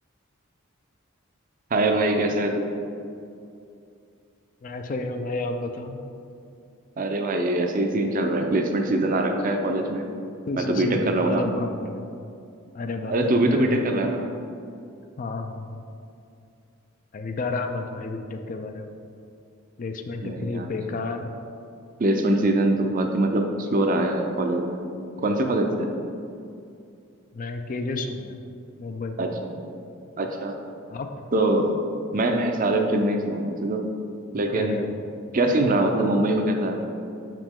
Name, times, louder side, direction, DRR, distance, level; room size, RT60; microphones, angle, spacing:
voice 1, 1.7-2.7 7.0-10.0 10.6-11.4 13.1-14.2 20.2-20.7 22.0-24.8 25.2-25.9 29.2-29.5 30.2-30.5 31.3-31.7 32.1-33.8 34.3-34.8 35.3-36.8, right 1 dB, 40° right, 4 dB, 0.5 m, -23 dB
voice 2, 4.6-6.0 10.5-12.1 12.7-13.8 15.2-15.8 17.1-19.0 19.8-21.3 27.3-28.4 28.8-29.3 30.9-31.1 34.5-35.0, left 3 dB, 40° left, 6 dB, 0.4 m, -31 dB
6.2 x 5.0 x 3.7 m, 2.5 s
head